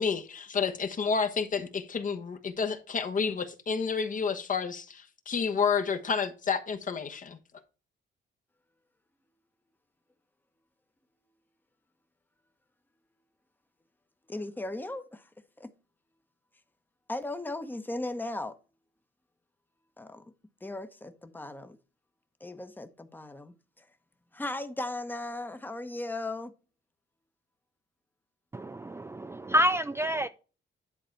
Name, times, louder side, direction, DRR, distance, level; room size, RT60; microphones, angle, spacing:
voice 1, 0.0-7.4, left 5 dB, 40° left, 1.2 m, -30 dB
voice 2, 14.3-15.3 15.6-15.7 17.1-18.5 20.0-20.2 20.6-21.8 22.4-23.8 24.3-26.5, left 2 dB, 10° left, 1.0 m, -37 dB
voice 3, 28.5-30.3, equal, 15° right, 0.4 m, -28 dB
10.5 x 4.0 x 4.5 m
cardioid pair, 90°, 20 cm